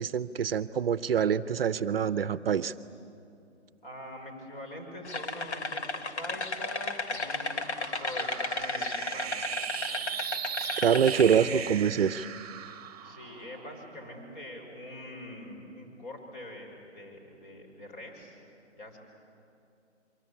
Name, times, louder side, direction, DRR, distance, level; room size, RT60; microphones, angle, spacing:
voice 1, 0.0-2.7 10.8-12.3, right 7 dB, 55° right, 15 dB, 0.7 m, -25 dB
voice 2, 3.8-9.4 11.1-11.7 13.0-18.4 18.8-19.0, left 1 dB, 45° left, 3 dB, 5.8 m, -44 dB
sound 1, 5.0-11.3, left 3 dB, 70° left, 2.0 m, -34 dB
sound 2, 6.2-14.8, right 9 dB, 35° right, 1.0 m, -39 dB
27.0 x 24.0 x 8.5 m, 2.6 s
hypercardioid pair, 150°, 36 cm